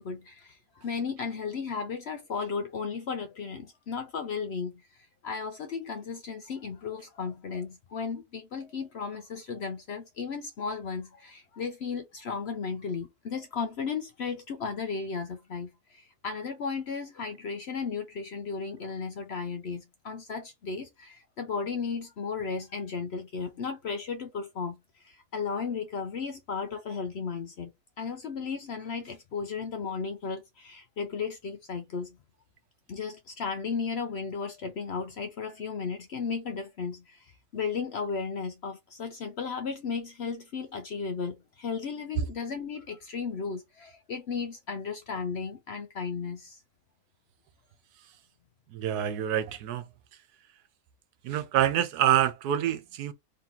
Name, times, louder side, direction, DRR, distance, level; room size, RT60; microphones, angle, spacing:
voice 1, 0.0-4.7 5.2-24.8 25.0-27.7 28.0-32.2 32.9-37.2 37.5-46.6, left 5 dB, 60° left, 0.7 m, -35 dB
voice 2, 48.7-49.8 51.2-53.1, right 11 dB, 90° right, 1.2 m, -26 dB
3.6 x 2.9 x 3.7 m
omnidirectional pair, 1.6 m